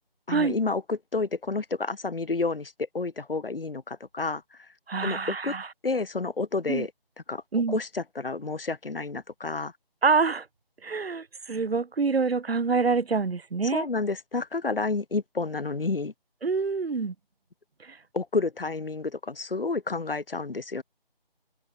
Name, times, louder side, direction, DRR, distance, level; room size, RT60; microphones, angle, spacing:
voice 1, 0.3-4.4 5.0-5.5 5.8-6.9 7.3-7.4 7.7-9.7 13.7-16.1 18.1-20.8, left 3 dB, 70° left, 1.4 m, -30 dB
voice 2, 4.9-5.7 6.7-6.9 7.5-7.8 10.0-10.5 10.8-13.9 16.4-17.1 17.9-18.0, right 4 dB, 85° right, 0.9 m, -26 dB
open air
figure-of-eight pair, 170°, 30 cm